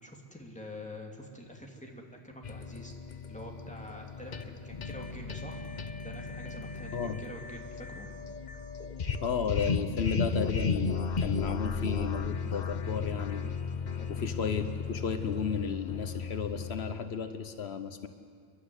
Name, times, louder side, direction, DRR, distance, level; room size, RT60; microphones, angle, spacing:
voice 1, 0.0-2.9 3.3-5.6 6.0-8.1 14.0-14.3, left 1 dB, 5° left, 0 dB, 2.7 m, -46 dB
sound 1, 2.4-16.9, left 5 dB, 45° left, 1.0 m, -35 dB
voice 2, 9.2-13.5 14.1-18.1, left 6 dB, 75° left, 9 dB, 1.2 m, -33 dB
29.0 x 12.0 x 9.7 m, 2.1 s
omnidirectional pair, 1.1 m